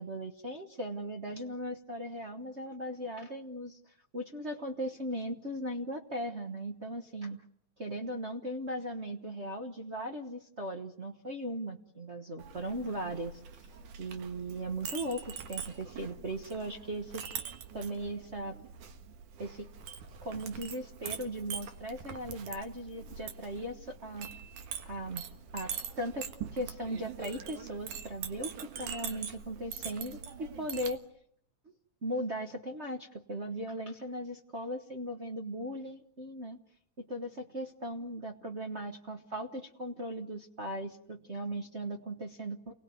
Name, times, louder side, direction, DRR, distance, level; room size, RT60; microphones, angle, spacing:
voice 1, 0.0-3.8 4.1-7.4 7.8-13.4 14.0-17.2 17.7-18.6 19.4-19.7 20.2-24.3 24.8-25.2 25.5-28.5 28.8-31.0 32.0-36.6 37.0-42.7, right 1 dB, 55° right, 5 dB, 0.7 m, -38 dB
Chink clink, 12.4-31.0, right 7 dB, 85° right, 3.0 m, -43 dB
29.5 x 19.5 x 9.3 m, 0.71 s
omnidirectional pair, 3.5 m